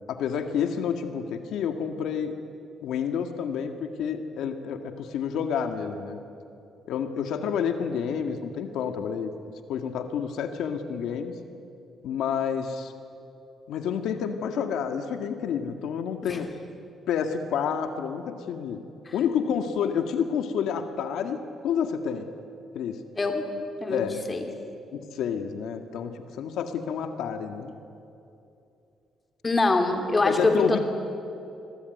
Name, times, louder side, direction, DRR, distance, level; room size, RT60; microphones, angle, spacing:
voice 1, 0.1-2.3 2.8-6.2 6.9-9.3 9.7-11.3 12.0-12.9 13.7-16.5 17.1-18.8 19.1-22.3 22.7-23.0 23.9-24.2 24.9-27.7 30.2-30.8, left 7 dB, 80° left, 7 dB, 1.9 m, -29 dB
voice 2, 29.4-30.8, left 2 dB, 20° left, 5 dB, 2.8 m, -23 dB
28.0 x 22.0 x 9.5 m, 2.7 s
cardioid pair, 155°, 0 cm